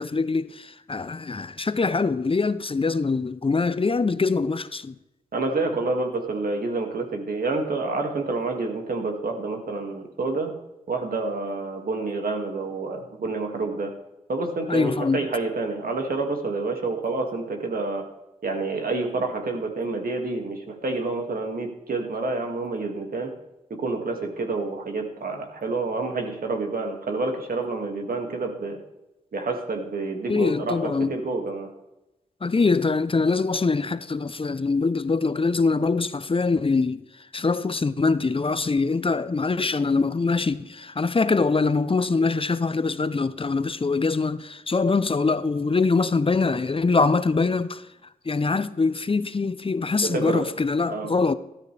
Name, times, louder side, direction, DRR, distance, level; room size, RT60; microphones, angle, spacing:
voice 1, 0.0-4.9 14.7-15.2 30.3-31.1 32.4-37.0 37.3-47.8 48.3-51.3, left 4 dB, 35° left, 0.7 m, -23 dB
voice 2, 5.3-10.5 10.9-13.9 14.3-18.1 18.4-23.3 23.7-28.8 29.3-31.7 50.0-50.5 50.9-51.2, right 3 dB, 70° right, 2.2 m, -28 dB
13.5 x 13.0 x 3.4 m
cardioid pair, 45°, 15 cm